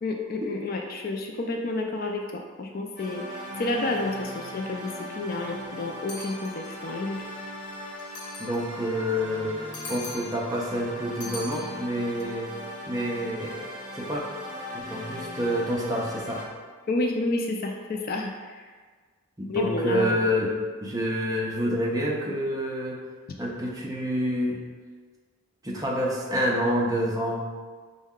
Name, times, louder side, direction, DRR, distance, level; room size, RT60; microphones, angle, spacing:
voice 1, 0.0-7.2 16.9-18.6 19.5-20.2, left 2 dB, 40° left, 2 dB, 0.3 m, -30 dB
sound 1, 3.0-16.4, equal, 5° left, 0.9 m, -39 dB
sound 2, 6.1-6.9 8.0-8.8 9.7-10.5 11.2-12.2, left 2 dB, 80° left, 0.7 m, -41 dB
voice 2, 8.4-12.5 12.9-13.6 14.0-14.2 14.7-16.5 19.4-20.5 20.8-23.0 23.4-24.6 25.6-27.5, equal, 15° right, -3 dB, 0.5 m, -28 dB
5.3 x 2.1 x 3.6 m, 1.5 s
head